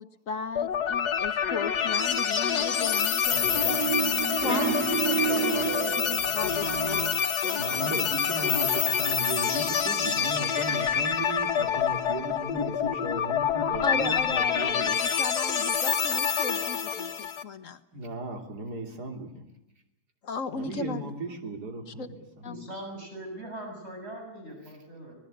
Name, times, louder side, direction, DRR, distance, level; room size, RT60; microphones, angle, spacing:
voice 1, 0.0-3.8 4.4-7.2 7.4-8.0 13.8-17.8 20.2-21.1 21.9-22.1 22.4-22.7, left 5 dB, 55° left, 11 dB, 1.4 m, -36 dB
sound 1, 0.6-17.4, left 7 dB, 85° left, 1.7 m, -27 dB
sound 2, 3.3-7.2, right 8 dB, 75° right, 1.6 m, -30 dB
voice 2, 7.6-14.9 17.9-19.4 20.5-22.0 22.4-22.5, right 2 dB, 90° right, 4 dB, 3.5 m, -36 dB
voice 3, 22.5-25.1, right 1 dB, 40° right, 1 dB, 7.3 m, -41 dB
25.5 x 19.5 x 8.0 m, 0.80 s
omnidirectional pair, 1.7 m